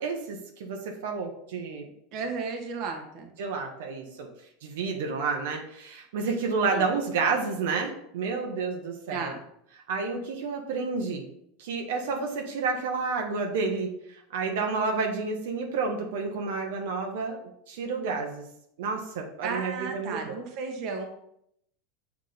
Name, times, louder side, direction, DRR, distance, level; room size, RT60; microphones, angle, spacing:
voice 1, 0.0-1.9 3.4-4.3 4.6-9.3 9.9-11.3 11.6-17.4 17.7-18.4 18.8-20.4, right 4 dB, 80° right, 2 dB, 1.0 m, -30 dB
voice 2, 2.1-3.3 6.7-6.9 9.1-9.4 19.4-21.1, right 4 dB, 45° right, 2 dB, 1.1 m, -34 dB
6.7 x 3.6 x 4.0 m, 0.73 s
supercardioid pair, 145°, 0 cm